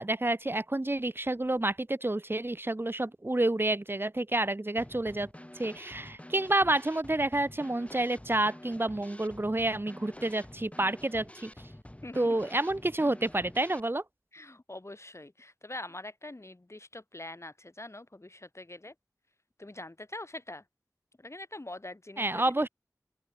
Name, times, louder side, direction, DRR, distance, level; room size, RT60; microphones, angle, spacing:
voice 1, 0.0-5.3 5.5-11.5 12.1-14.0 22.2-22.7, right 2 dB, 35° right, 1.0 m, -29 dB
Drum kit / Snare drum, 4.8-13.8, left 1 dB, 20° left, 5.0 m, -48 dB
voice 2, 12.0-12.4 14.3-18.9 19.6-20.6 21.2-22.4, left 2 dB, 45° left, 3.5 m, -44 dB
open air
wide cardioid pair, 45°, 6 cm